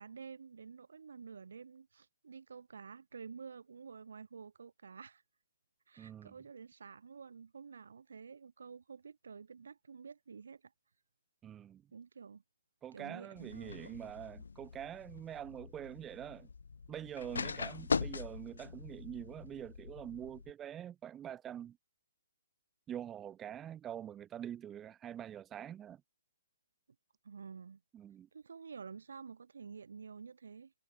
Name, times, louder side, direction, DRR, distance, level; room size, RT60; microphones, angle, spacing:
voice 1, 0.0-5.2 5.9-10.7 11.9-12.4 12.9-13.9 27.2-27.8 28.3-30.7, right 5 dB, 70° right, 7.0 m, -50 dB
voice 2, 6.0-6.3 11.4-11.8 12.8-16.5 16.9-21.8 22.9-26.0 27.9-28.3, right 10 dB, 10° right, 1.2 m, -45 dB
sound 1, 13.4-20.5, left 5 dB, 75° left, 3.1 m, -41 dB
hypercardioid pair, 165°, 0 cm